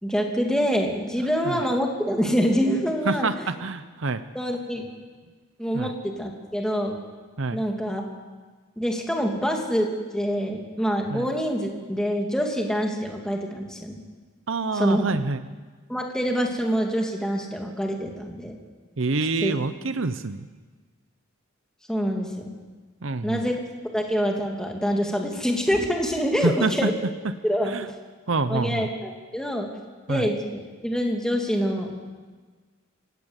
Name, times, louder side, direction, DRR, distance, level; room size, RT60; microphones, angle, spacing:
voice 1, 0.0-3.4 4.3-4.9 5.6-7.0 7.5-8.0 8.8-14.0 14.7-15.1 15.9-18.5 19.4-19.5 21.9-22.5 23.2-23.6 23.9-26.9 27.4-27.9 28.5-29.7 30.1-31.9, equal, 5° left, 1 dB, 2.7 m, -26 dB
voice 2, 3.1-4.2 5.7-5.9 7.4-7.6 11.1-11.3 14.5-15.4 19.0-20.5 23.0-23.5 26.4-26.9 27.6-27.9 28.3-28.9 30.1-30.3, right 3 dB, 60° right, 12 dB, 0.8 m, -26 dB
26.5 x 16.0 x 8.3 m, 1.4 s
head